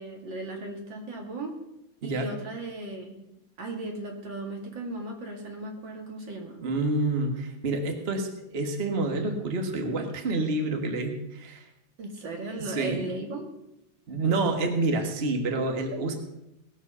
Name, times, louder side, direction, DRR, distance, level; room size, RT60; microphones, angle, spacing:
voice 1, 0.0-1.6 2.0-3.2 3.6-6.6 12.0-13.5, right 2 dB, 75° right, 1 dB, 2.9 m, -36 dB
voice 2, 6.6-11.7 12.6-13.1 14.1-16.1, right 2 dB, 35° right, 4 dB, 1.6 m, -28 dB
19.0 x 7.5 x 5.5 m, 0.88 s
omnidirectional pair, 2.1 m